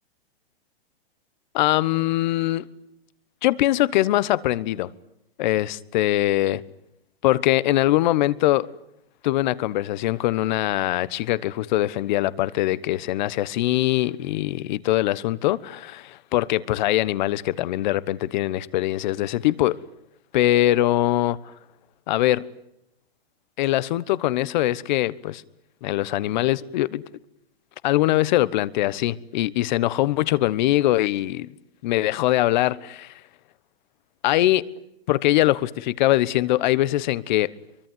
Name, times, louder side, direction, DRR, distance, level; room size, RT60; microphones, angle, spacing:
voice 1, 1.5-2.6 3.4-4.9 5.4-6.6 7.2-8.7 9.2-19.8 20.3-21.5 22.1-22.5 23.6-25.4 25.8-27.0 27.8-31.5 31.8-33.1 34.2-34.6 35.1-37.5, left 15 dB, 50° left, 1.2 m, -22 dB
24.5 x 23.5 x 9.5 m
hypercardioid pair, 145°, 30 cm